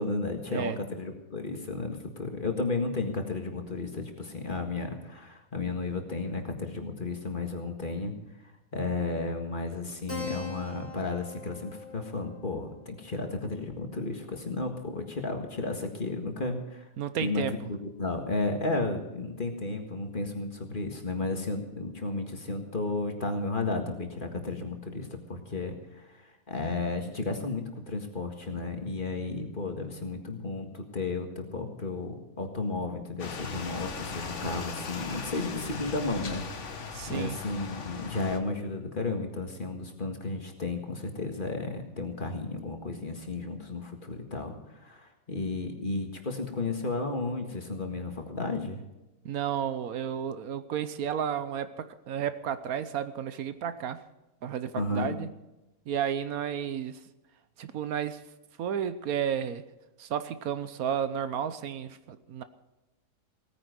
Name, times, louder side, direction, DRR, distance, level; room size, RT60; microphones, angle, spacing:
voice 1, 0.0-8.1 8.7-16.9 17.2-36.7 37.1-48.8 54.8-55.2, left 3 dB, 35° left, 4 dB, 1.9 m, -33 dB
Keyboard (musical), 10.1-15.1, left 4 dB, 10° right, 2.6 m, -43 dB
voice 2, 17.0-17.7 36.9-37.4 49.2-54.0 54.4-55.3 55.9-57.0 57.6-58.2 58.6-59.6 60.0-62.4, right 8 dB, 75° right, 12 dB, 1.3 m, -32 dB
sound 1, 33.2-38.4, left 4 dB, 55° left, 1.5 m, -38 dB
17.0 x 9.8 x 6.6 m, 0.98 s
omnidirectional pair, 1.5 m